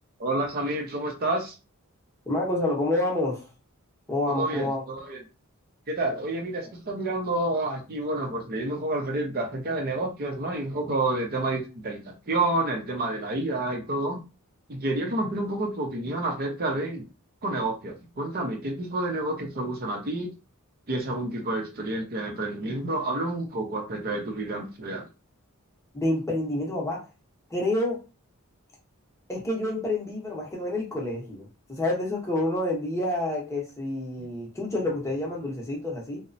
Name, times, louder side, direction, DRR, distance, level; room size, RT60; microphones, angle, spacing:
voice 1, 0.2-1.5 4.3-5.2 5.9-14.2 14.7-17.0 17.4-20.3 20.9-25.0, right 2 dB, 45° right, 2 dB, 0.6 m, -29 dB
voice 2, 2.3-3.5 4.1-4.8 25.9-27.0 27.5-28.0 29.3-36.2, left 1 dB, 15° left, -2 dB, 0.8 m, -28 dB
2.9 x 2.0 x 2.6 m, 0.31 s
head